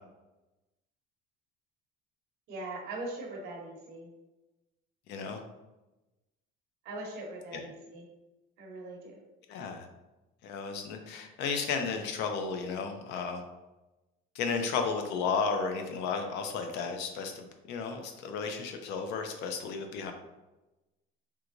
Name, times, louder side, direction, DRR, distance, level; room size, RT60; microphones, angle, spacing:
voice 1, 2.5-4.1 6.8-8.0 8.6-9.2, right 2 dB, 50° right, -2 dB, 0.9 m, -41 dB
voice 2, 5.1-5.4 7.5-7.6 9.5-9.9 10.4-13.4 14.3-20.1, left 5 dB, 55° left, 5 dB, 0.5 m, -33 dB
3.4 x 3.0 x 2.5 m, 1.0 s
cardioid pair, 180°, 21 cm